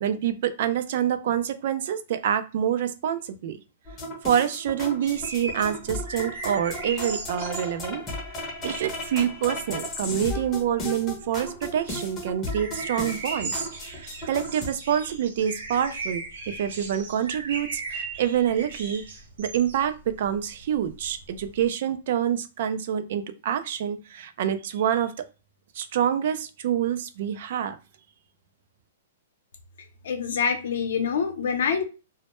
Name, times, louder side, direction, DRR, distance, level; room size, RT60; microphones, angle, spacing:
voice 1, 0.0-3.6 4.2-8.0 8.6-13.7 13.9-19.0 19.4-25.1 25.8-27.8, right 9 dB, 50° right, 10 dB, 0.3 m, -27 dB
sound 1, 3.8-14.7, left 1 dB, 20° left, 0.6 m, -35 dB
sound 2, 5.0-21.7, right 3 dB, 70° right, 0.7 m, -38 dB
voice 2, 30.0-31.8, left 6 dB, 70° left, 5 dB, 0.6 m, -25 dB
2.1 x 2.0 x 2.9 m, 0.31 s
hypercardioid pair, 160°, 0 cm